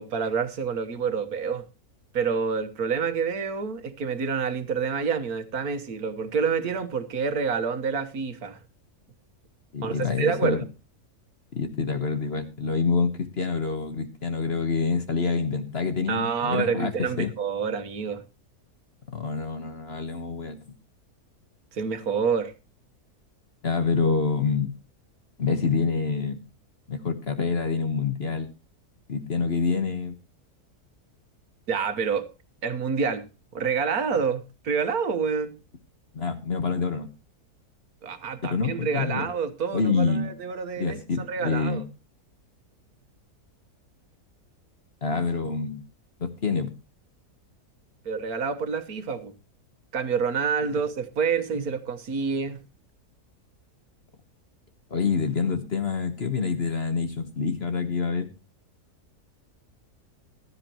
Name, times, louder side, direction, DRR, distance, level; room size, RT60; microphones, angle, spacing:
voice 1, 0.0-1.7 2.1-8.6 9.8-10.6 16.1-18.2 21.7-22.5 31.7-32.3 32.6-33.2 33.5-35.6 38.0-41.8 48.1-49.3 49.9-52.6, right 6 dB, 70° right, 1.7 m, -28 dB
voice 2, 9.7-10.6 11.5-17.3 19.1-20.6 23.6-24.7 25.4-26.4 26.9-28.5 29.1-30.1 36.1-37.1 38.4-39.3 39.7-40.3 40.8-41.8 45.0-45.8 46.2-46.8 54.9-58.3, left 5 dB, 40° left, 1.4 m, -27 dB
15.5 x 12.5 x 3.0 m
omnidirectional pair, 1.7 m